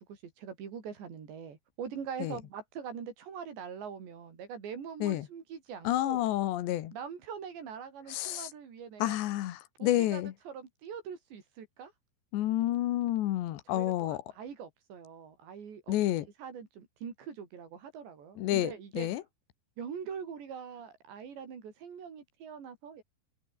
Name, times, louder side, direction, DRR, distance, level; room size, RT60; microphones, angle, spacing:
voice 1, 0.0-6.2 6.9-9.2 9.8-11.9 13.7-16.0 16.4-19.1 19.8-23.0, right 7 dB, 85° right, 6.5 m, -43 dB
voice 2, 5.9-6.9 8.1-8.5 9.0-10.3 12.3-14.2 15.9-16.3 18.4-19.2, left 14 dB, 90° left, 3.7 m, -30 dB
omnidirectional pair, 4.9 m